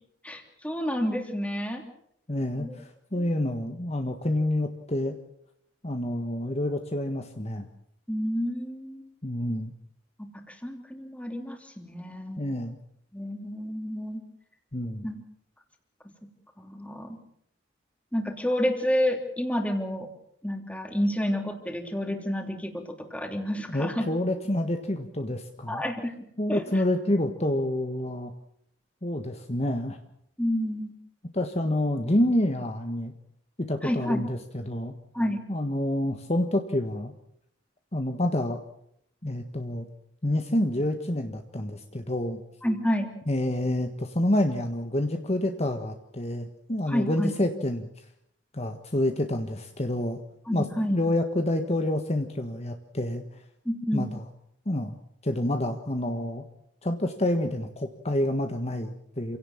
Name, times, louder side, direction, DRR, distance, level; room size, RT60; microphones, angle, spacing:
voice 1, 0.2-1.8 2.6-2.7 3.1-3.3 8.1-9.0 10.2-12.4 13.1-14.2 15.0-15.2 16.6-17.2 18.1-20.1 20.4-24.1 25.7-26.1 26.5-26.8 30.4-30.9 33.8-34.2 35.1-35.4 42.6-43.1 46.9-47.3 50.5-51.0 53.6-54.0, equal, 5° left, 4 dB, 3.2 m, -29 dB
voice 2, 2.3-5.1 5.8-7.7 9.2-9.7 12.4-12.8 14.7-15.1 23.7-25.8 26.4-28.3 29.0-30.0 31.3-33.1 33.7-34.9 35.5-37.1 37.9-38.6 39.2-39.9 40.2-42.4 43.3-47.9 48.5-50.2 50.5-53.2 53.9-54.2 54.6-55.0 55.2-56.4 56.8-59.4, left 1 dB, 35° left, 6 dB, 1.6 m, -28 dB
28.0 x 17.5 x 7.4 m, 0.73 s
head